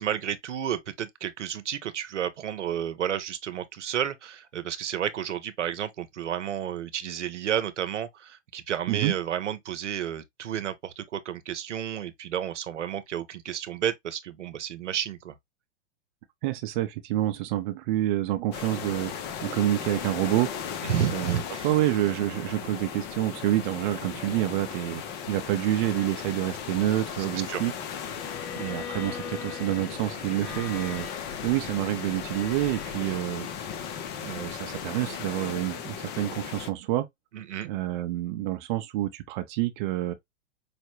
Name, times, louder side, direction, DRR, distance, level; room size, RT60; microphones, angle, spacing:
voice 1, 0.0-15.3 20.8-21.7 27.5-27.6 37.3-37.7, right 9 dB, 85° right, 0.8 m, -31 dB
voice 2, 16.4-19.1 19.4-20.5 21.1-27.7 28.5-31.1 31.4-33.5 34.2-37.1 37.6-40.1, right 14 dB, 45° right, 0.7 m, -28 dB
sound 1, 18.5-36.7, left 8 dB, 30° left, 0.7 m, -37 dB
Bowed string instrument, 28.1-33.0, left 7 dB, 60° left, 2.1 m, -42 dB
4.9 x 2.1 x 3.0 m
hypercardioid pair, 120°, 35 cm